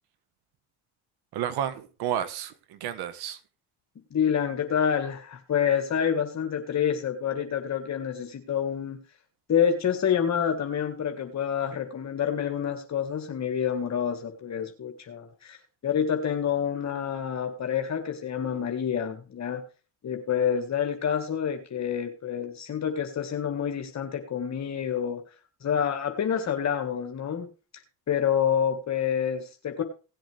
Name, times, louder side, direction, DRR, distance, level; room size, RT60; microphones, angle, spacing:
voice 1, 1.3-3.4, right 10 dB, 75° right, 1.5 m, -31 dB
voice 2, 4.1-9.0 9.5-15.6 15.8-19.6 20.0-25.2 25.6-27.5 27.7-29.8, left 8 dB, 45° left, 1.7 m, -28 dB
17.0 x 7.8 x 3.4 m
supercardioid pair, 85°, 39 cm